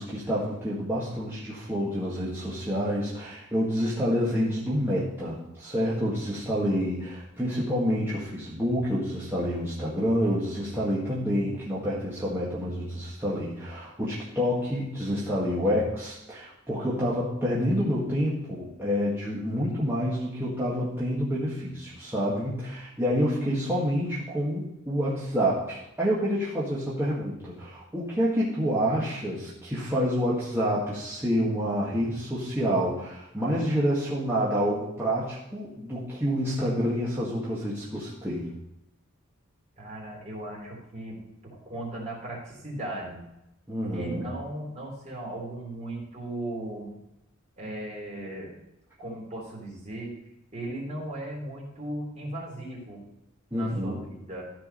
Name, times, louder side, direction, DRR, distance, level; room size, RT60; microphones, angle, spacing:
voice 1, 0.0-38.5 43.7-44.3 53.5-54.0, equal, 10° right, -8 dB, 1.8 m, -28 dB
voice 2, 39.8-41.2 41.4-43.2 43.9-46.9 47.6-48.5 49.0-50.1 50.5-53.0 53.5-54.5, right 1 dB, 35° right, -3 dB, 3.3 m, -37 dB
13.5 x 4.8 x 5.6 m, 0.87 s
head